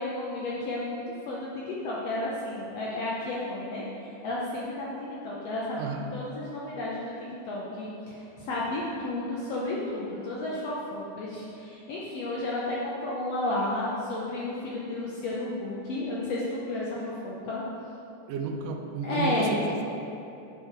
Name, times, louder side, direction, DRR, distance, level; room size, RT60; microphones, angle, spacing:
voice 1, 0.0-3.8 4.2-4.9 5.2-7.1 7.5-16.9 17.2-17.6 19.0-19.6, left 2 dB, 70° left, -5 dB, 1.6 m, -32 dB
voice 2, 5.7-6.1 18.3-19.8, right 4 dB, 90° right, 3 dB, 2.2 m, -32 dB
7.6 x 4.9 x 4.5 m, 2.8 s
omnidirectional pair, 3.6 m